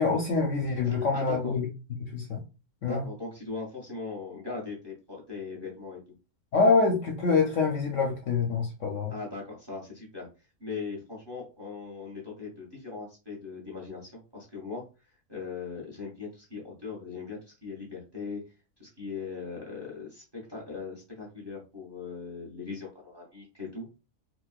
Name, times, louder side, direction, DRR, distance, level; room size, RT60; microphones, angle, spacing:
voice 1, 0.0-1.7 2.1-2.4 2.8-3.0 6.5-9.1, left 4 dB, 65° left, 2 dB, 0.9 m, -25 dB
voice 2, 0.8-1.5 2.8-6.0 9.1-10.3 10.6-14.8 15.3-18.4 18.8-20.2 20.5-23.8, left 4 dB, 20° right, -3 dB, 0.9 m, -39 dB
4.0 x 2.2 x 2.3 m, 0.30 s
omnidirectional pair, 1.6 m